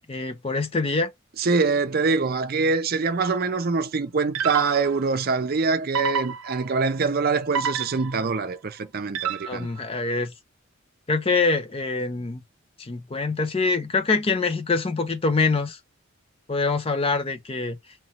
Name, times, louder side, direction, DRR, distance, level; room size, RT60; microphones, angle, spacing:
voice 1, 0.1-1.1 9.4-10.3 11.1-12.4 12.8-15.8 16.5-17.8, left 3 dB, 25° left, 0.5 m, -24 dB
voice 2, 1.4-9.7, right 4 dB, 45° right, 0.5 m, -24 dB
sound 1, 3.2-3.5 4.3-5.1 5.9-6.8 7.5-8.4 9.1-9.8, right 7 dB, 90° right, 0.7 m, -29 dB
3.0 x 3.0 x 4.2 m
head